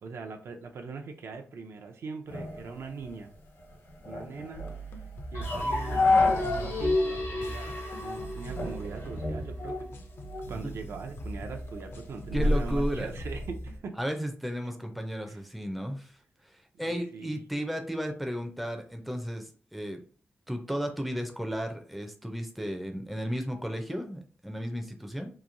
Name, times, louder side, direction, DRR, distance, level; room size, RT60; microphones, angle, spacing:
voice 1, 0.0-3.3 4.0-4.6 5.3-9.9 10.5-13.9 15.3-15.4 16.8-17.4, right 4 dB, 75° right, 4 dB, 0.5 m, -41 dB
sound 1, 2.3-6.8 7.1-7.2 7.9-8.2 8.6-10.6 11.0-13.5, left 2 dB, 70° left, 1.0 m, -30 dB
sound 2, 4.5-13.8, right 2 dB, 55° left, 0.5 m, -41 dB
sound 3, 5.3-9.3, left 1 dB, 90° left, 0.7 m, -32 dB
voice 2, 12.3-13.1 14.0-16.1 16.8-20.0 20.5-25.3, equal, ahead, 4 dB, 0.4 m, -34 dB
2.9 x 2.6 x 2.5 m, 0.42 s
wide cardioid pair, 150°, 4 cm